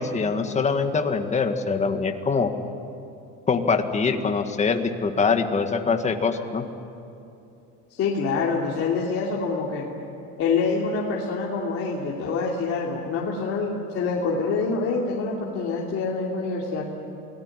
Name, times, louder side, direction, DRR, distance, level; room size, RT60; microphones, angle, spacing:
voice 1, 0.0-2.5 3.5-6.6, left 5 dB, 20° left, 6 dB, 1.8 m, -23 dB
voice 2, 7.9-9.9 10.4-16.8, left 4 dB, 45° left, -4 dB, 3.1 m, -26 dB
28.0 x 18.5 x 9.9 m, 2.7 s
cardioid pair, 140°, 32 cm